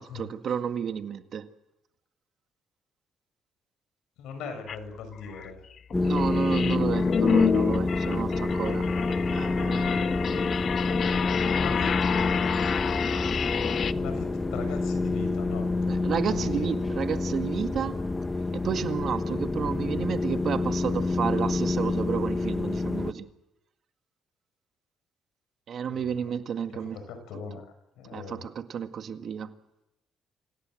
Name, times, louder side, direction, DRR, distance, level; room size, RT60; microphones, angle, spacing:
voice 1, 0.0-1.5 6.0-10.3 15.9-18.0 18.5-23.3 25.7-27.0 28.1-29.6, right 8 dB, 60° right, 1.9 m, -31 dB
voice 2, 4.2-5.7 11.5-12.1 13.9-15.7 16.2-16.7 25.9-26.3 26.8-27.7 28.0-28.5, left 5 dB, 85° left, 6.7 m, -39 dB
sound 1, 4.7-4.8 5.2-13.9, left 7 dB, 55° left, 0.8 m, -29 dB
sound 2, 5.9-23.1, left 3 dB, 15° left, 1.6 m, -28 dB
26.5 x 17.0 x 7.9 m
cardioid pair, 85°, 0 cm